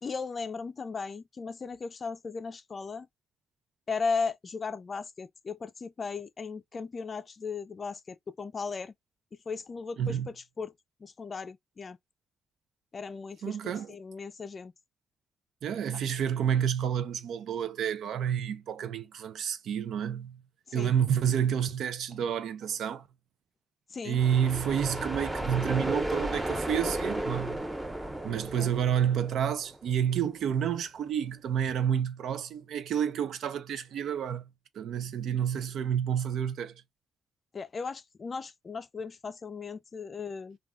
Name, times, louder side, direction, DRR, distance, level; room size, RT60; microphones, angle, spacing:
voice 1, 0.0-3.1 3.9-8.9 9.5-10.7 11.0-12.0 12.9-14.7 20.7-20.9 23.9-24.2 28.5-28.7 37.5-40.6, left 5 dB, 40° left, 0.4 m, -36 dB
voice 2, 10.0-10.3 13.4-13.9 15.6-20.4 20.7-23.1 24.0-27.6 28.2-34.5 34.7-36.8, right 8 dB, 80° right, 0.5 m, -29 dB
sound 1, 24.1-29.9, right 1 dB, 10° right, 0.8 m, -34 dB
2.3 x 2.3 x 3.6 m
cardioid pair, 100°, 0 cm